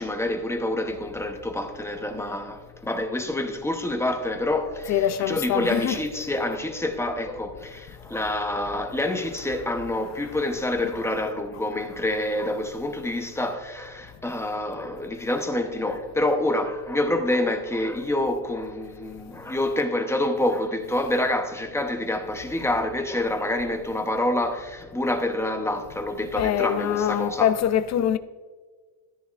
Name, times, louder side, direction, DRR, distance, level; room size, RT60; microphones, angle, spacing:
voice 1, 0.0-27.5, left 1 dB, 5° left, 0.7 m, -27 dB
voice 2, 4.9-6.0 26.4-28.2, left 10 dB, 40° left, 0.4 m, -23 dB
13.0 x 10.0 x 2.4 m
cardioid pair, 140°, 45 cm